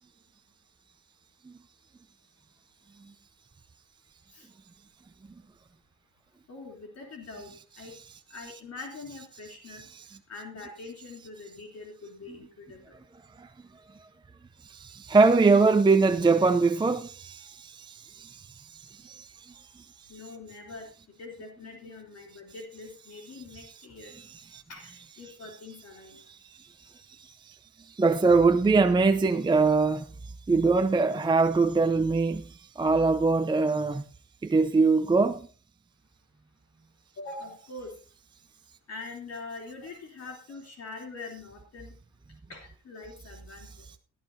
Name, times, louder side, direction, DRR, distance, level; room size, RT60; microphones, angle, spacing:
voice 1, 6.5-7.9 8.3-9.9 10.3-13.0 20.1-20.9 21.2-24.1 24.7-26.2 37.2-37.9 38.9-41.9 42.5-43.8, left 3 dB, 55° left, 3.3 m, -43 dB
voice 2, 14.6-19.9 24.1-24.6 26.3-34.0 34.4-35.5, right 4 dB, 15° right, 0.6 m, -24 dB
16.5 x 11.0 x 2.8 m
cardioid pair, 90°, 30 cm